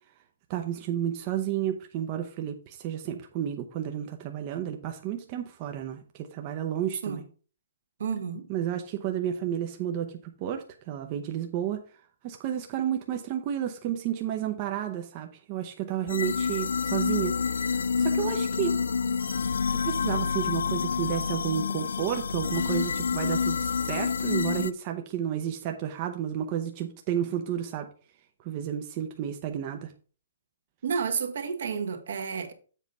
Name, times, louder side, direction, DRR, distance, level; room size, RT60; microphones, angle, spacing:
voice 1, 0.5-7.2 8.5-11.8 12.2-18.8 19.8-27.9 28.4-29.9, right 10 dB, 30° right, 0.7 m, -31 dB
voice 2, 8.0-8.5 30.8-32.5, right 6 dB, 70° right, 1.4 m, -31 dB
sound 1, 16.1-24.7, left 5 dB, 90° left, 0.4 m, -28 dB
7.3 x 4.0 x 5.4 m
hypercardioid pair, 155°, 0 cm